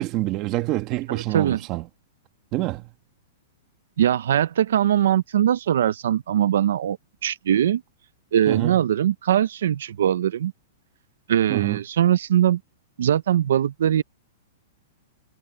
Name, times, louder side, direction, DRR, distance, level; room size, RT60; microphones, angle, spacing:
voice 1, 0.0-1.8 2.5-2.9 8.5-8.8 11.5-11.8, right 17 dB, 25° right, 1.3 m, -26 dB
voice 2, 1.1-1.6 4.0-7.0 7.2-7.8 8.3-10.5 11.3-12.6 13.0-14.0, right 10 dB, 75° right, 0.5 m, -21 dB
supercardioid pair, 170°, 0 cm